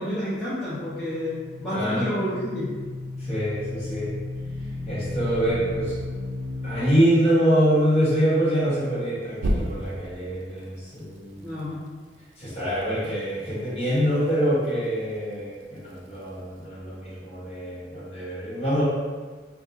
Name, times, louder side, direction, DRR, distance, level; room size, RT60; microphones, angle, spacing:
voice 1, 0.0-2.7 11.4-11.8, left 1 dB, ahead, -13 dB, 0.7 m, -29 dB
sound 1, 1.1-6.8 9.4-10.1, left 1 dB, 80° right, 0.4 m, -32 dB
voice 2, 1.7-2.1 3.2-4.1 4.9-6.0 6.6-11.6 12.4-18.8, equal, 35° left, -9 dB, 1.2 m, -25 dB
4.2 x 2.4 x 2.5 m, 1.4 s
head